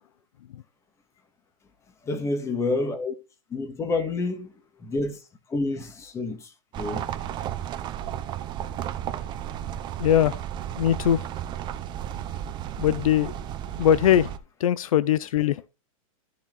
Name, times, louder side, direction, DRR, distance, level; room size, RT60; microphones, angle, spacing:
voice 1, 2.0-3.1 3.5-4.5 4.8-5.2 5.5-6.5 6.8-7.1, left 3 dB, 15° left, 1.9 m, -28 dB
sound 1, 6.7-14.4, right 11 dB, 25° right, 0.8 m, -33 dB
voice 2, 10.0-10.4 10.8-11.2 12.8-13.3 13.8-14.3 14.6-15.6, left 10 dB, 75° left, 0.7 m, -21 dB
14.5 x 5.1 x 4.0 m
hypercardioid pair, 140°, 18 cm